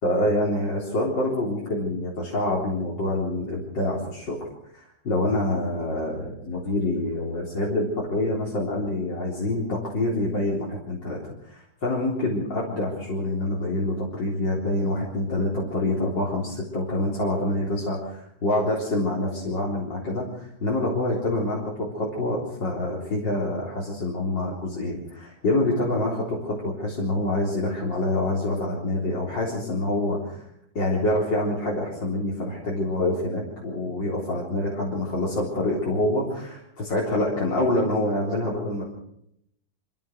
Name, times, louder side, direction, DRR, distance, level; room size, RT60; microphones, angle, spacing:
voice 1, 0.0-4.4 4.7-30.4 30.7-38.8, left 1 dB, 65° left, -4 dB, 4.6 m, -26 dB
25.5 x 16.0 x 6.4 m, 0.76 s
omnidirectional pair, 2.1 m